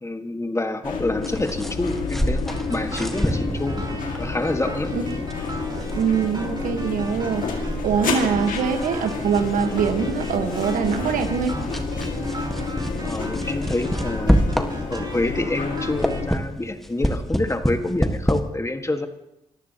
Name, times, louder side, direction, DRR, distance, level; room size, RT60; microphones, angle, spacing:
voice 1, 0.0-3.8 4.2-4.9 8.1-8.2 13.0-14.4 14.9-19.1, left 2 dB, 20° left, 6 dB, 1.7 m, -27 dB
sound 1, 0.8-16.3, left 4 dB, 75° left, 2.2 m, -30 dB
sound 2, 1.2-15.2 15.6-18.4, equal, ahead, 1.6 m, -28 dB
sound 3, 2.5-16.2, right 1 dB, 30° right, 4.4 m, -37 dB
voice 2, 5.9-11.6, right 6 dB, 85° right, 7 dB, 1.4 m, -23 dB
26.0 x 14.0 x 3.0 m, 0.84 s
supercardioid pair, 45°, 14 cm